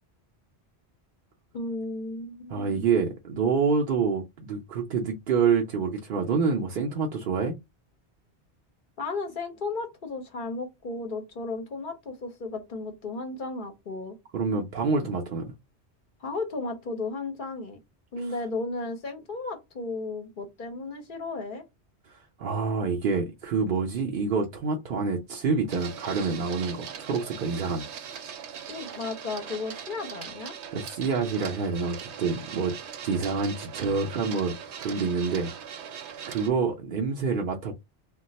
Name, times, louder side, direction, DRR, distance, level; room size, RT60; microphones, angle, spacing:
voice 1, 1.5-3.0 9.0-14.2 16.2-17.8 18.1-21.6 28.7-30.5, left 3 dB, 55° left, 0.7 m, -34 dB
voice 2, 2.5-7.6 14.3-15.4 18.2-18.3 22.1-27.8 30.7-32.8 33.0-34.5 34.8-35.5 36.3-37.7, right 5 dB, 60° right, 0.7 m, -27 dB
Printer, 25.7-36.5, right 7 dB, 90° right, 0.9 m, -40 dB
2.3 x 2.2 x 3.9 m
omnidirectional pair, 1.1 m